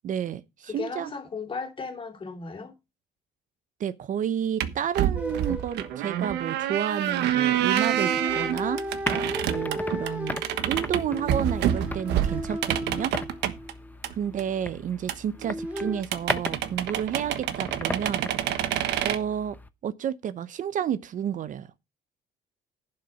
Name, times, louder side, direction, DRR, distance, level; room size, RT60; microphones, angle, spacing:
voice 1, 0.0-1.1 3.8-8.8 9.4-13.1 14.1-18.3 19.0-19.6 19.8-21.7, right 9 dB, 50° right, 0.7 m, -30 dB
voice 2, 0.7-2.7, left 4 dB, 30° left, 2.9 m, -35 dB
sound 1, 4.6-13.7 14.0-14.1 14.4-14.5 14.7-14.8 15.1-15.2 15.4-15.5 15.8-15.9 16.0-19.2, right 11 dB, 85° right, 1.3 m, -27 dB
sound 2, 5.2-6.8 7.9-13.9 15.4-16.0, equal, 10° right, 2.8 m, -35 dB
sound 3, 8.3-19.7, left 2 dB, 10° left, 0.7 m, -39 dB
11.0 x 6.5 x 5.9 m
cardioid pair, 120°, 17 cm